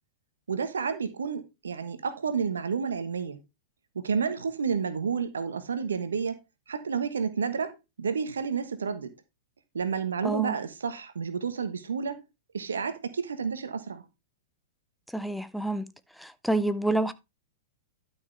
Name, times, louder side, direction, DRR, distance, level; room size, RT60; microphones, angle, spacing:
voice 1, 0.5-3.4 3.9-6.4 6.7-9.1 9.7-12.2 12.5-14.0, right 6 dB, 80° right, 1.3 m, -30 dB
voice 2, 10.2-10.6 15.1-15.9 16.2-17.1, right 2 dB, ahead, 0.8 m, -28 dB
12.0 x 6.2 x 3.4 m
hypercardioid pair, 105°, 0 cm